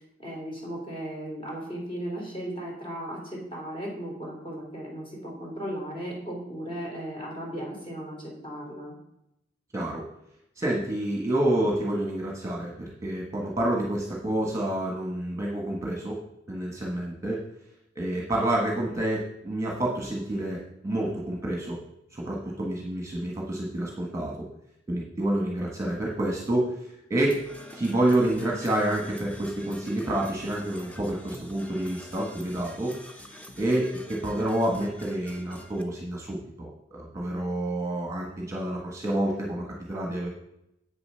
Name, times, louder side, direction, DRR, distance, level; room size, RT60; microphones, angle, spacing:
voice 1, 0.0-8.9, right 1 dB, 30° left, -3 dB, 3.1 m, -36 dB
voice 2, 9.7-10.0 10.6-16.2 16.5-17.4 17.9-21.8 22.1-24.5 24.9-26.7 27.1-27.4 27.7-33.0 33.6-40.3, right 1 dB, 15° right, -2 dB, 1.4 m, -28 dB
Percussion / Brass instrument, 27.3-35.8, equal, 5° left, 0.7 m, -46 dB
8.1 x 6.8 x 5.7 m, 0.81 s
head